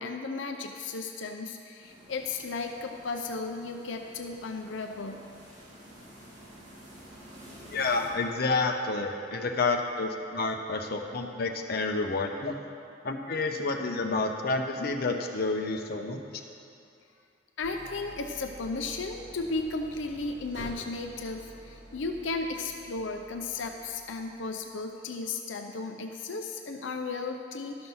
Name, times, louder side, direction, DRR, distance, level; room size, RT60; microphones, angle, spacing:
voice 1, 0.0-5.3 17.6-27.9, left 3 dB, 90° left, 4 dB, 0.6 m, -35 dB
sound 1, 1.8-8.1, equal, 45° right, 2.4 m, -50 dB
voice 2, 7.7-12.6 13.0-16.2, left 3 dB, 55° left, 3 dB, 0.8 m, -29 dB
Idling, 17.6-24.7, right 1 dB, 85° right, 2.3 m, -49 dB
12.0 x 6.1 x 5.6 m, 2.6 s
head